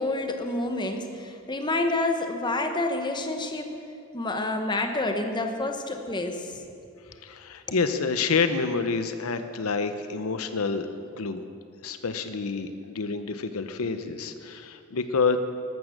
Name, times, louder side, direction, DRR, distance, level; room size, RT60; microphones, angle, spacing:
voice 1, 0.0-3.7 4.1-6.6, left 2 dB, 20° left, 5 dB, 1.1 m, -28 dB
voice 2, 7.2-11.4 11.8-15.4, left 4 dB, 80° left, 9 dB, 0.8 m, -28 dB
13.5 x 12.5 x 6.5 m, 2.5 s
head